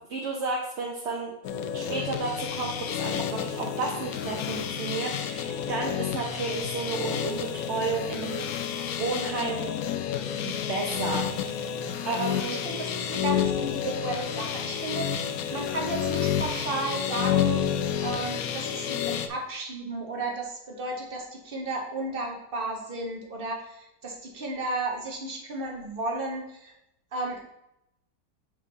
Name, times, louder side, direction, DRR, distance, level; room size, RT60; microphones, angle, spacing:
voice 1, 0.1-1.3 1.7-8.4 9.0-9.7 10.4-12.6, right 4 dB, 50° right, 0 dB, 0.9 m, -32 dB
sound 1, 1.4-19.3, left 9 dB, 70° left, 0.9 m, -30 dB
voice 2, 12.5-15.1 15.5-17.6 18.0-26.7 27.1-27.4, right 2 dB, 35° right, 1 dB, 1.3 m, -33 dB
7.9 x 4.2 x 4.0 m, 0.84 s
omnidirectional pair, 1.8 m